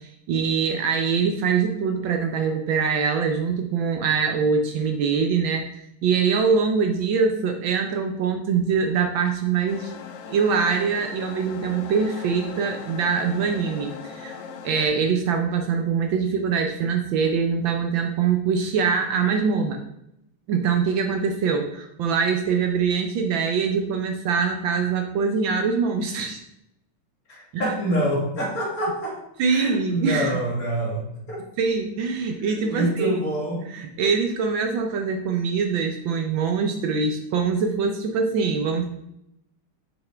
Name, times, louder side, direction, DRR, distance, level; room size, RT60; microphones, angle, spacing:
voice 1, 0.0-10.0 10.3-19.8 20.5-26.4 27.5-27.7 29.4-30.4 31.6-33.1 33.7-38.9, right 5 dB, 70° right, 4 dB, 1.3 m, -23 dB
sound 1, 9.7-14.9, left 6 dB, 70° left, 1.1 m, -39 dB
voice 2, 27.3-29.2 29.5-31.4 32.5-33.6, right 1 dB, 45° left, -3 dB, 2.1 m, -26 dB
6.6 x 5.8 x 3.3 m, 0.81 s
omnidirectional pair, 2.4 m